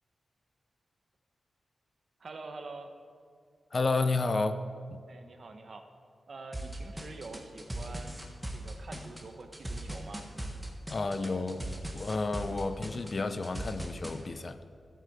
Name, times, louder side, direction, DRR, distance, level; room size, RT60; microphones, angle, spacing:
voice 1, 2.2-2.9 5.1-5.8 6.3-8.2 8.5-10.2, right 3 dB, 45° right, 6 dB, 1.1 m, -46 dB
voice 2, 3.7-4.6 4.9-5.0 10.9-11.7 11.9-14.6, left 3 dB, 35° left, 11 dB, 0.5 m, -31 dB
sound 1, 6.5-14.2, right 1 dB, 5° right, 1.4 m, -39 dB
14.0 x 8.4 x 8.0 m, 2.2 s
wide cardioid pair, 170°, 0 cm